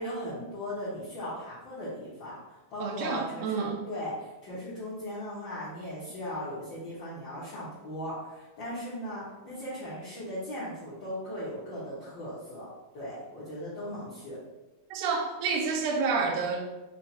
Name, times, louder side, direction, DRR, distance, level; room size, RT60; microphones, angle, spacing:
voice 1, 0.0-12.7 12.9-14.4, equal, 75° left, -10 dB, 1.1 m, -38 dB
voice 2, 2.8-3.8 14.9-16.6, right 5 dB, 85° right, 1 dB, 1.5 m, -29 dB
5.5 x 2.3 x 4.2 m, 1.1 s
omnidirectional pair, 3.9 m